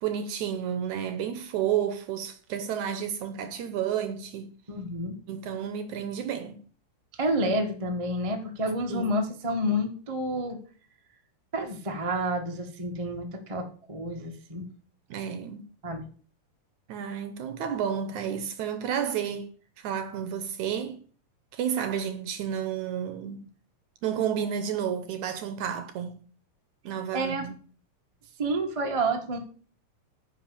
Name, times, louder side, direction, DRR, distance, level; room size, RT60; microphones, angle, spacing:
voice 1, 0.0-4.6 5.3-6.6 8.9-9.1 15.1-15.6 16.9-19.5 19.8-21.0 21.5-23.5 24.0-26.2 26.9-27.6, right 8 dB, 70° right, 1.9 m, -31 dB
voice 2, 4.7-5.2 7.2-10.6 11.5-14.7 15.8-16.0 27.1-27.5 28.4-29.4, right 1 dB, 40° right, 0.4 m, -29 dB
10.0 x 5.7 x 7.1 m
omnidirectional pair, 4.1 m